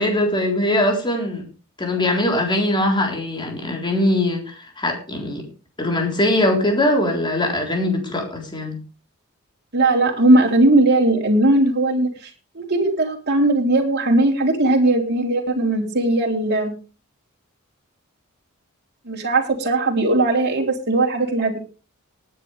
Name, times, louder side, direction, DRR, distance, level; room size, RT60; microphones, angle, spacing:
voice 1, 0.0-1.4 1.8-5.5 5.8-8.8, left 1 dB, 20° left, 2 dB, 3.9 m, -21 dB
voice 2, 9.7-12.1 12.5-16.7 19.1-21.6, right 2 dB, 50° right, 1 dB, 3.6 m, -18 dB
19.0 x 9.9 x 3.4 m, 0.35 s
head